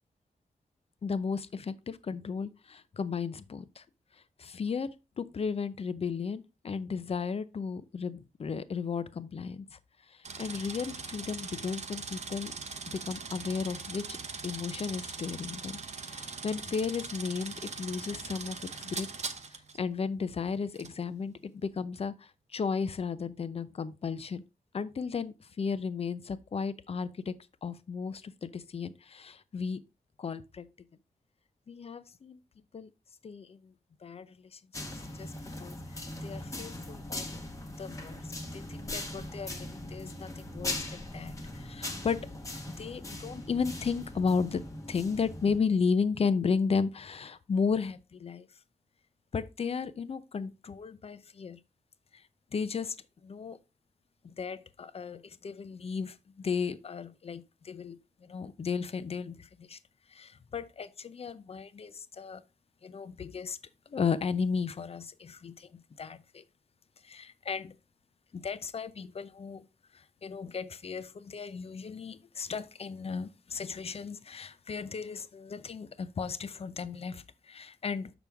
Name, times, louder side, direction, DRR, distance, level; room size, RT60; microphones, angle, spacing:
voice 1, 1.0-3.8 4.4-4.9 5.2-9.8 10.1-12.5 12.9-14.2 14.4-19.1 19.5-24.4 24.7-27.3 27.6-29.8 30.2-30.7 31.7-32.4 32.7-32.9 33.2-33.7 34.0-34.6 35.2-35.3 35.6-35.8 36.2-37.3 37.8-42.2 42.7-48.5 49.3-51.6 52.1-52.2 52.5-53.0 53.2-53.6 54.2-59.8 60.1-62.4 62.8-63.6 63.9-66.4 67.0-67.7 68.3-69.7 69.9-78.1, left 5 dB, 40° left, 0.6 m, -34 dB
sound 1, 10.2-19.8 20.7-20.9, right 4 dB, 50° right, 0.8 m, -41 dB
sound 2, 34.7-45.6, left 2 dB, 20° left, 1.2 m, -40 dB
6.9 x 6.1 x 3.5 m
wide cardioid pair, 150°, 15 cm